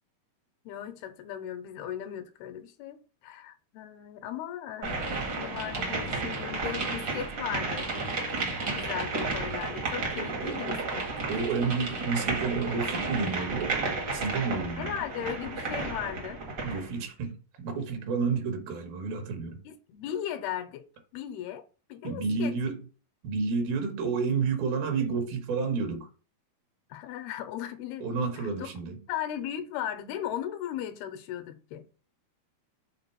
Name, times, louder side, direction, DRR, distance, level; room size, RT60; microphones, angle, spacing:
voice 1, 0.7-3.0 3.2-5.0 5.4-7.9 8.7-11.1 14.7-16.4 19.6-20.9 21.1-21.6 21.9-22.5 26.9-28.1 28.4-28.7 29.1-31.9, left 10 dB, 90° left, 2.6 m, -37 dB
sound 1, 4.8-16.9, right 3 dB, 55° right, 1.2 m, -32 dB
sound 2, 9.6-14.6, right 8 dB, 90° right, 3.3 m, -40 dB
voice 2, 11.3-13.7 14.1-14.9 16.6-19.6 22.0-22.8 23.2-26.1 28.0-29.0, right 4 dB, 70° right, 3.0 m, -30 dB
6.7 x 3.6 x 5.6 m
omnidirectional pair, 4.5 m